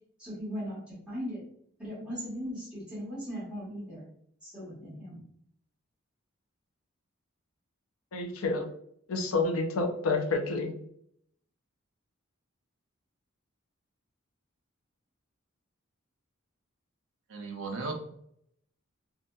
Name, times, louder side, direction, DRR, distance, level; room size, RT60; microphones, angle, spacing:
voice 1, 0.2-1.4 1.8-4.0 4.4-5.2, equal, 5° right, -10 dB, 1.3 m, -38 dB
voice 2, 8.1-8.7 9.1-10.8, left 3 dB, 90° left, 4 dB, 0.5 m, -29 dB
voice 3, 17.3-17.9, right 3 dB, 70° right, 1 dB, 0.6 m, -35 dB
2.7 x 2.6 x 2.2 m, 0.67 s
head